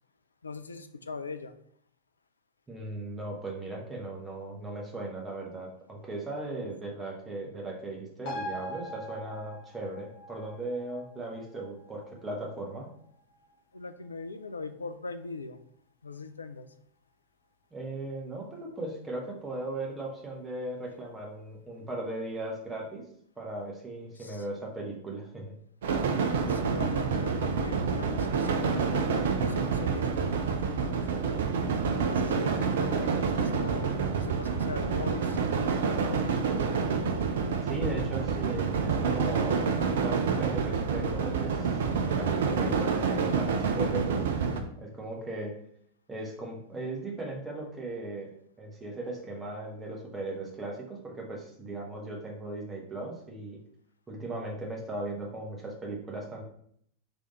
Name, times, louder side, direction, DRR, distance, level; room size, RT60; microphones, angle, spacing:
voice 1, 0.4-1.6 6.6-6.7 13.7-15.6 16.0-16.7 24.2-24.4 26.5-31.0 31.9-35.4, left 4 dB, 75° left, 9 dB, 0.3 m, -40 dB
voice 2, 2.7-12.9 17.7-23.1 23.4-25.5 37.6-41.8 42.1-45.6 46.1-48.3 48.6-53.6 54.1-56.4, right 2 dB, 15° right, -1 dB, 1.0 m, -37 dB
sound 1, 8.2-15.2 15.6-15.7, equal, 40° left, 1.3 m, -44 dB
sound 2, 25.8-44.6, right 5 dB, 60° right, 0.5 m, -28 dB
3.5 x 3.4 x 3.9 m, 0.67 s
figure-of-eight pair, 90°, 0 cm